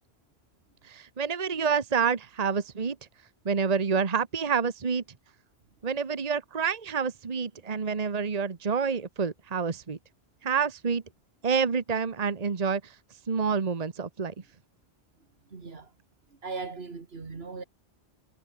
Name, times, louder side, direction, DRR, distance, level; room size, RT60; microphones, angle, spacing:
voice 1, 0.8-3.0 3.4-5.0 5.8-10.0 10.4-11.0 11.4-12.9 13.3-14.3, right 6 dB, 40° right, 1.2 m, -28 dB
voice 2, 15.5-15.9 16.3-17.6, right 4 dB, 75° right, 2.2 m, -38 dB
omnidirectional pair, 1.0 m